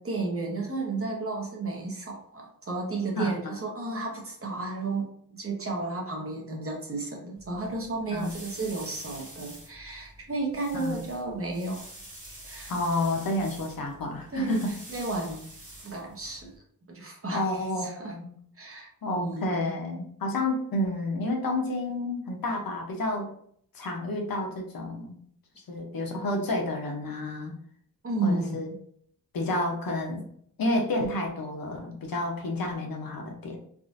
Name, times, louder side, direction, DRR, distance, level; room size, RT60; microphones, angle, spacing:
voice 1, 0.0-11.8 12.2-12.7 14.3-15.4 15.8-16.5 16.9-18.2 18.6-19.7 28.0-28.8, right 2 dB, 40° right, -1 dB, 0.9 m, -33 dB
voice 2, 3.2-3.5 8.1-8.3 10.7-11.0 12.7-14.7 17.3-18.3 19.0-23.3 23.7-25.1 25.7-27.5 28.2-28.7 29.3-30.2 30.6-33.6, left 1 dB, 75° left, 1 dB, 0.8 m, -30 dB
sound 1, 7.3-16.6, right 1 dB, 20° right, 1.2 m, -47 dB
3.6 x 2.4 x 2.5 m, 0.64 s
wide cardioid pair, 100°, 36 cm